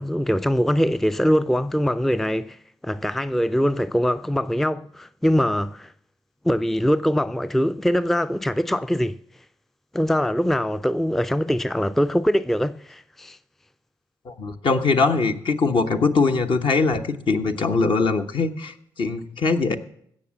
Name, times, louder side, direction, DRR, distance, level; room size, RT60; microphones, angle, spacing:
voice 1, 0.0-2.6 2.8-5.9 6.4-9.2 9.9-13.4, equal, 5° left, 0.4 m, -22 dB
voice 2, 14.2-19.7, left 4 dB, 55° left, 1.1 m, -22 dB
16.0 x 6.6 x 7.1 m
hypercardioid pair, 45°, 10 cm